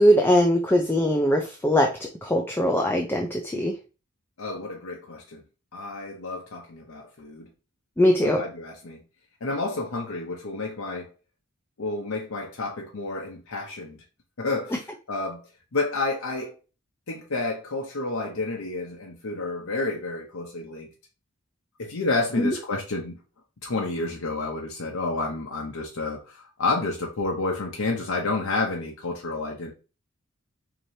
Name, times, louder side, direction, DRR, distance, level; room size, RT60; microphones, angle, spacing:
voice 1, 0.0-3.7 8.0-8.4 22.4-22.5, equal, 10° left, 2 dB, 0.4 m, -21 dB
voice 2, 4.4-5.4 5.7-7.5 8.2-9.0 9.4-11.1 11.8-14.0 14.4-15.4 15.7-16.6 17.1-20.9 21.8-23.2 23.6-29.7, left 3 dB, 85° left, 0 dB, 0.8 m, -30 dB
4.8 x 2.9 x 2.7 m, 0.32 s
head